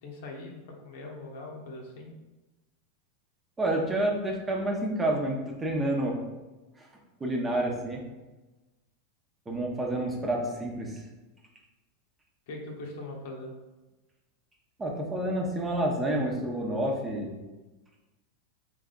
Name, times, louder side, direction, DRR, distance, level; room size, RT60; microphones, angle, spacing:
voice 1, 0.0-2.1 12.5-13.5, left 2 dB, 70° left, 0 dB, 1.0 m, -41 dB
voice 2, 3.6-6.2 6.8-6.9 7.2-8.0 9.5-11.0 14.8-17.4, right 1 dB, 20° right, 0 dB, 1.0 m, -29 dB
3.4 x 3.4 x 3.9 m, 1.1 s
hypercardioid pair, 100°, 0 cm